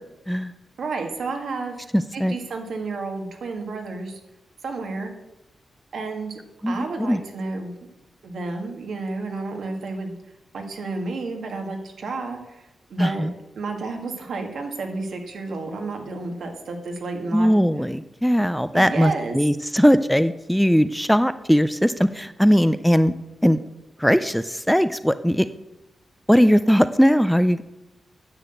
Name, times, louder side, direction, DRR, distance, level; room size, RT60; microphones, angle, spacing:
voice 1, 0.8-1.9 2.1-4.2 4.6-5.1 5.9-6.4 6.7-7.7 8.2-10.1 10.5-13.3 13.6-17.6 18.7-19.4, right 3 dB, 75° right, 3 dB, 1.8 m, -31 dB
voice 2, 1.9-2.4 6.6-7.2 13.0-13.3 17.3-23.1 23.4-23.6 24.0-25.5 26.3-27.6, equal, ahead, 12 dB, 0.4 m, -19 dB
9.7 x 6.1 x 7.8 m, 0.92 s
wide cardioid pair, 105°, 0 cm